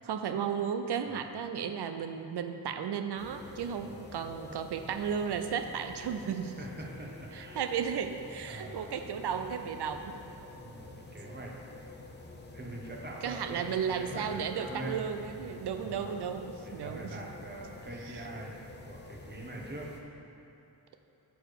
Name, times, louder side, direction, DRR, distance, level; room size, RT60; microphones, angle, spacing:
voice 1, 0.0-6.6 7.3-10.2 13.2-17.2 18.1-18.2, right 7 dB, 70° right, 7 dB, 0.6 m, -34 dB
sound 1, 3.2-20.0, left 2 dB, 25° left, 0.8 m, -48 dB
voice 2, 6.6-7.8 8.5-9.0 10.6-11.5 12.5-15.0 15.3-16.1 16.6-18.5 18.9-19.9 20.3-20.5, right 1 dB, 25° right, -2 dB, 1.2 m, -43 dB
6.8 x 4.2 x 6.6 m, 2.9 s
cardioid pair, 75°, 41 cm